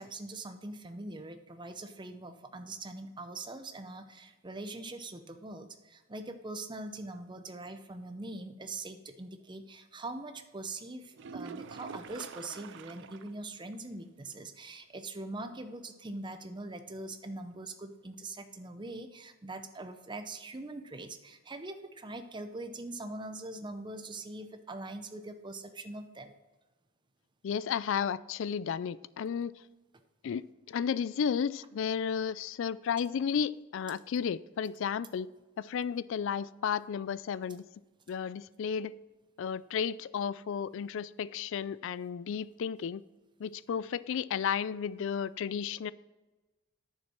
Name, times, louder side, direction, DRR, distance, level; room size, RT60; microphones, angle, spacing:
voice 1, 0.0-26.3, right 2 dB, 20° right, 0.7 m, -42 dB
sound 1, 11.1-13.4 13.7-13.8 14.3-14.4 18.1-18.2, right 5 dB, 60° right, 0.4 m, -45 dB
voice 2, 27.4-29.5 30.2-35.3 35.6-37.6 38.1-38.9 39.4-43.0 43.4-45.9, left 7 dB, 60° left, 0.3 m, -33 dB
9.7 x 7.0 x 4.4 m
head